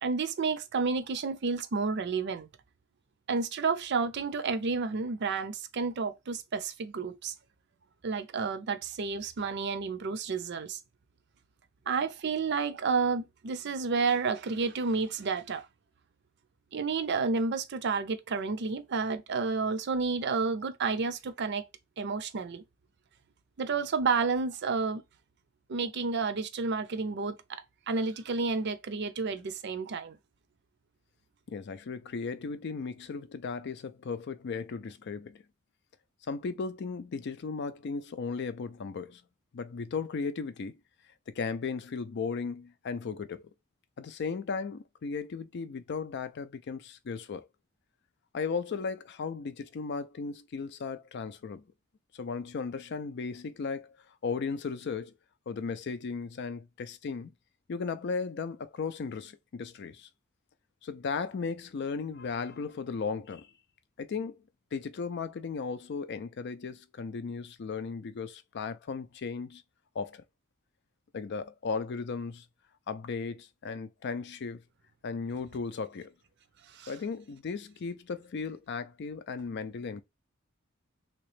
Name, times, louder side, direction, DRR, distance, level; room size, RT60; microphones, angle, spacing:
voice 1, 0.0-2.5 3.3-7.3 8.0-10.8 11.9-15.6 16.7-21.6 22.0-22.6 23.6-25.0 25.7-27.3 27.9-30.2 76.7-76.9, right 4 dB, 60° right, 0.5 m, -30 dB
voice 2, 31.5-35.4 36.3-39.2 39.5-40.8 41.3-43.5 44.0-47.5 48.3-51.6 52.1-54.0 54.2-55.1 55.5-57.3 57.7-60.1 60.8-63.5 64.0-64.4 64.7-69.6 69.9-70.2 71.1-72.4 72.9-74.6 75.0-76.1 76.9-80.0, left 5 dB, 60° left, 0.4 m, -36 dB
3.1 x 3.0 x 3.2 m
head